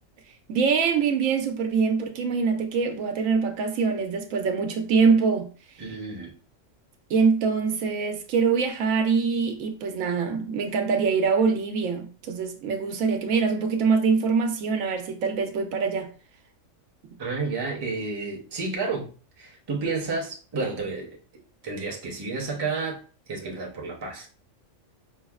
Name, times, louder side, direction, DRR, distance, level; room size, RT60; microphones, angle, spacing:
voice 1, 0.5-5.5 7.1-16.1, right 5 dB, 90° right, 1.0 m, -24 dB
voice 2, 5.8-6.3 17.2-19.1 19.4-21.2 21.6-23.0 23.3-24.3, right 4 dB, 30° right, 0.5 m, -31 dB
5.4 x 2.0 x 2.3 m
omnidirectional pair, 1.3 m